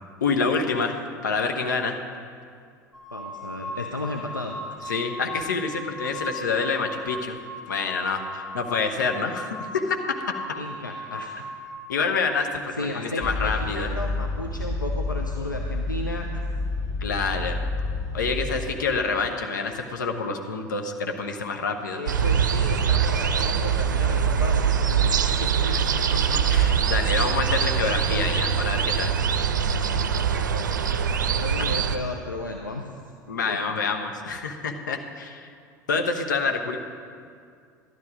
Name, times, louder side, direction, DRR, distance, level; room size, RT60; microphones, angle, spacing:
voice 1, 0.2-2.0 4.9-7.4 7.7-10.2 11.9-13.9 17.0-17.6 18.1-22.0 25.7-25.8 26.1-29.1 33.3-35.5 35.9-36.8, left 4 dB, 70° left, 5 dB, 1.0 m, -27 dB
sound 1, 2.9-11.8, equal, 5° right, 3.5 m, -37 dB
voice 2, 3.1-4.6 10.5-11.4 12.7-16.4 21.9-25.8 30.3-30.8 31.3-32.9 33.5-33.6, left 2 dB, 90° left, 2 dB, 0.6 m, -34 dB
sound 2, 13.2-18.7, left 2 dB, 35° left, 3.1 m, -29 dB
sound 3, 22.1-32.0, right 7 dB, 75° right, 0.5 m, -23 dB
12.0 x 11.0 x 5.0 m, 2.2 s
figure-of-eight pair, 70°, 10 cm